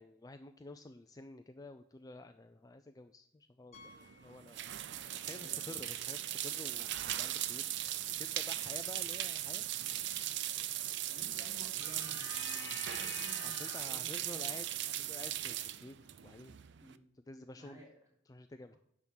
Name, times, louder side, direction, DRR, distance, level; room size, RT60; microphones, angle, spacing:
voice 1, 0.0-4.6 5.1-7.7 8.2-9.7 13.4-14.7 15.0-16.0 16.2-16.6 17.3-17.8 18.3-18.8, left 2 dB, 20° left, 8 dB, 0.4 m, -50 dB
Piano, 3.7-5.3 5.6-5.7 6.3-6.4 6.7-6.8 8.8-8.9, left 3 dB, 35° left, 1.1 m, -61 dB
sound 1, 3.7-16.9, right 12 dB, 65° right, 0.4 m, -38 dB
voice 2, 5.3-5.8 8.7-8.8 11.1-14.5 16.8-17.0 17.6-18.1, right 1 dB, 20° right, -2 dB, 3.5 m, -55 dB
sound 2, 11.8-14.1, left 7 dB, 65° left, 0.7 m, -48 dB
10.5 x 3.7 x 7.2 m, 0.72 s
head